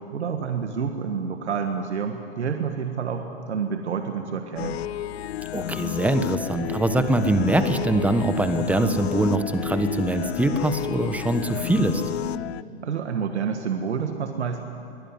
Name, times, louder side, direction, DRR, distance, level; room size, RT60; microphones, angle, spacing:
voice 1, 0.0-4.8 12.8-14.6, right 6 dB, 85° right, 5 dB, 1.7 m, -28 dB
sound 1, 4.6-12.6, left 12 dB, 70° left, 0.6 m, -32 dB
voice 2, 5.5-12.0, right 1 dB, 5° right, 8 dB, 1.4 m, -23 dB
23.5 x 17.0 x 9.8 m, 2.6 s
hypercardioid pair, 115°, 33 cm